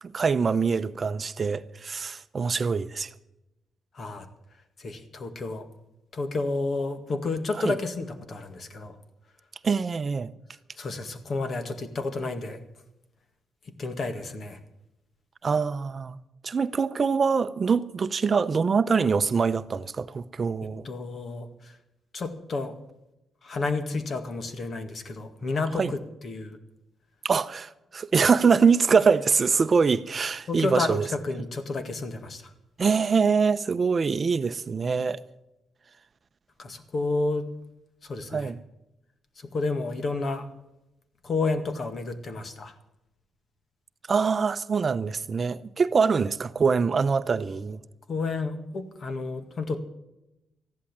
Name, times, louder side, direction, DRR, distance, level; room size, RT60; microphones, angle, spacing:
voice 1, 0.0-3.1 7.5-7.8 9.6-10.3 15.4-16.2 16.4-20.9 25.7-25.9 27.2-31.1 32.8-35.2 38.3-38.6 44.1-47.8, right 5 dB, 40° right, 0.6 m, -24 dB
voice 2, 3.9-4.3 4.8-5.7 6.1-9.0 10.8-12.6 13.8-14.6 20.8-21.8 22.1-22.8 23.4-26.6 28.4-28.5 30.5-32.5 36.6-37.5 38.0-38.5 39.4-40.5 41.2-42.7 48.1-49.8, left 3 dB, 50° left, 1.9 m, -31 dB
14.5 x 11.5 x 7.3 m
cardioid pair, 90°, 0 cm